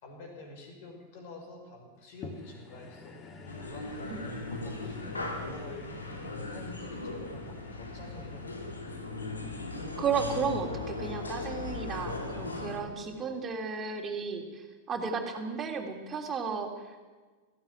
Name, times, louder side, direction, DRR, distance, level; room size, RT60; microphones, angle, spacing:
voice 1, 0.0-3.2 3.6-4.1 4.5-5.9 6.5-8.8, left 2 dB, 50° left, 3 dB, 6.1 m, -47 dB
sound 1, 2.2-12.7 13.3-13.4, left 3 dB, 30° left, 2.6 m, -51 dB
sound 2, 3.5-12.8, left 2 dB, 80° left, 2.9 m, -38 dB
voice 2, 10.0-17.0, right 5 dB, 25° right, 3 dB, 3.3 m, -34 dB
19.0 x 16.0 x 9.4 m, 1.4 s
figure-of-eight pair, 90°, 0 cm